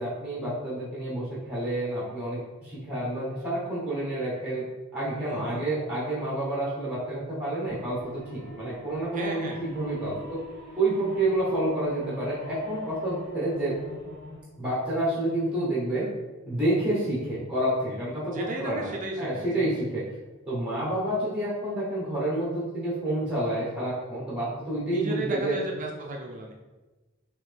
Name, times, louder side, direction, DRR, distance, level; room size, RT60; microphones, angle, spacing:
voice 1, 0.0-4.7 4.9-10.4 10.7-13.8 14.6-16.1 16.5-20.0 20.5-25.6, right 1 dB, 5° right, -7 dB, 0.9 m, -29 dB
voice 2, 5.2-5.6 9.1-9.6 18.3-19.9 24.9-26.5, right 2 dB, 35° right, 0 dB, 0.4 m, -34 dB
sound 1, 7.6-14.4, equal, 25° left, 1.3 m, -44 dB
3.9 x 3.0 x 3.3 m, 1.2 s
head